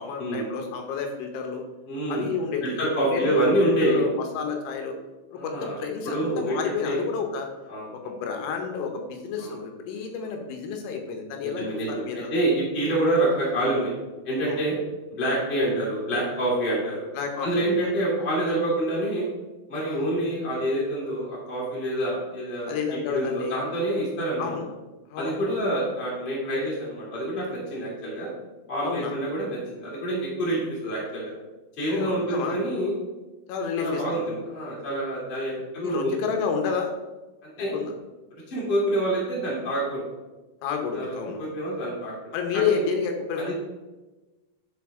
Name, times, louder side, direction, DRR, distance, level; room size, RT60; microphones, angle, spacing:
voice 1, 0.0-1.6 2.1-2.8 3.1-5.0 5.4-7.5 8.0-12.3 14.5-14.6 17.2-17.9 19.9-20.1 22.7-23.6 24.4-24.7 25.1-25.4 28.8-29.1 31.9-32.6 33.5-34.2 35.8-36.9 37.6-37.9 40.6-41.5 42.3-43.5, left 6 dB, 80° left, 3 dB, 3.2 m, -30 dB
voice 2, 1.9-2.3 2.6-4.0 5.3-5.8 6.0-7.0 7.7-7.9 9.4-9.6 11.5-13.9 14.2-14.8 15.1-17.0 17.4-19.3 19.7-24.5 25.2-28.3 28.7-31.3 31.8-32.9 33.8-36.1 37.4-37.7 38.5-40.0 40.9-41.1 41.4-42.8 43.4-43.5, right 1 dB, 20° left, -6 dB, 1.4 m, -27 dB
11.0 x 4.3 x 3.6 m, 1.1 s
omnidirectional pair, 5.6 m